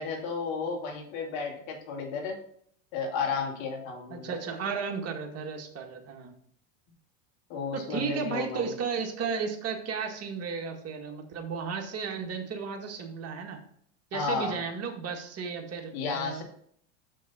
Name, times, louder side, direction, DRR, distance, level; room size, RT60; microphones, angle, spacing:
voice 1, 0.0-2.3 2.9-4.3 7.5-8.6 14.1-14.6 15.9-16.4, left 5 dB, 60° left, 1 dB, 2.8 m, -33 dB
voice 2, 4.1-6.3 7.7-13.6 14.1-16.4, right 5 dB, 40° right, 3 dB, 1.8 m, -34 dB
6.5 x 6.4 x 4.3 m, 0.64 s
hypercardioid pair, 100°, 39 cm